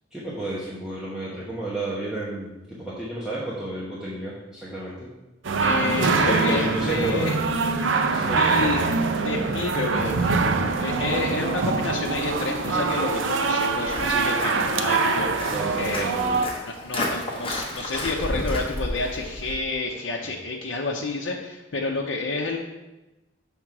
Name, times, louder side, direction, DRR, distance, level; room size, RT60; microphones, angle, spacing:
voice 1, 0.1-5.1 6.1-7.3 8.1-8.8 10.3-10.7 11.0-11.5 14.4-14.9 15.5-16.4 17.0-17.1 20.2-20.3, right 2 dB, 5° right, -8 dB, 1.0 m, -32 dB
sound 1, 5.4-16.5, right 4 dB, 80° right, 0.5 m, -24 dB
voice 2, 5.6-7.4 8.0-8.8 9.2-10.4 10.8-16.1 16.6-22.6, left 3 dB, 90° left, -2 dB, 0.7 m, -29 dB
Walk footsteps, 10.9-19.5, left 1 dB, 30° left, 1.2 m, -34 dB
6.0 x 3.6 x 5.9 m, 1.0 s
head